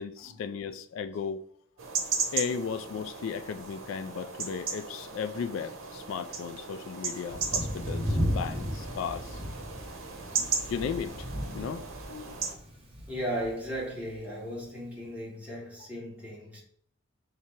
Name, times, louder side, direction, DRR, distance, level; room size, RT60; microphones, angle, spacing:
voice 1, 0.0-1.5 2.3-9.6 10.4-11.3 11.5-12.4, left 6 dB, 75° left, 0.3 m, -36 dB
sound 1, 1.8-12.5, right 5 dB, 85° right, 0.8 m, -36 dB
Thunder, 7.3-14.1, equal, 30° right, 0.8 m, -35 dB
voice 2, 13.1-16.6, equal, 5° right, 1.3 m, -36 dB
3.3 x 2.8 x 4.5 m
head